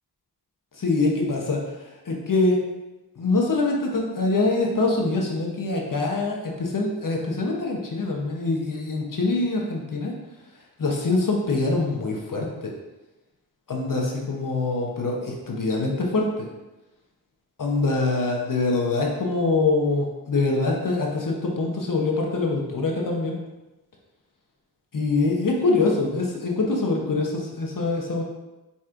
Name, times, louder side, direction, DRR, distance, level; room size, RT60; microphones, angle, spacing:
voice 1, 0.8-1.6 2.1-2.6 3.2-10.1 10.8-12.7 13.7-16.5 17.6-23.3 24.9-28.2, left 3 dB, 50° left, -1 dB, 0.9 m, -24 dB
4.4 x 4.2 x 2.5 m, 1.0 s
wide cardioid pair, 75°, 41 cm